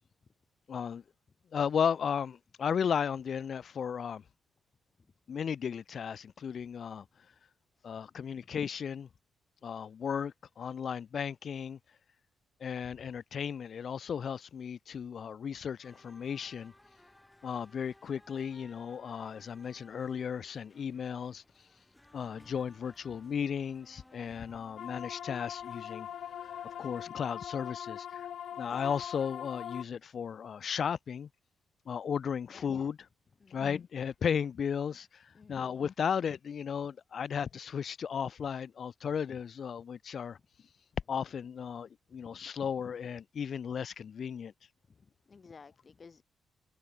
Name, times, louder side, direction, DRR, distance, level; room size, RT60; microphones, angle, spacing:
voice 1, 0.7-1.0 1.5-4.2 5.3-7.0 7.8-9.1 9.6-11.8 12.6-16.7 17.4-21.4 22.1-26.1 26.8-28.3 28.6-31.3 31.9-33.0 33.5-35.2 35.5-40.4 41.1-44.5, left 7 dB, 50° left, 1.0 m, -35 dB
sound 1, 15.8-27.1, left 1 dB, 10° left, 3.2 m, -61 dB
sound 2, 24.8-29.8, left 10 dB, 65° left, 1.2 m, -41 dB
voice 2, 35.3-35.7 42.2-42.3 44.9-46.2, left 5 dB, 30° left, 1.8 m, -56 dB
cardioid pair, 140°, 0 cm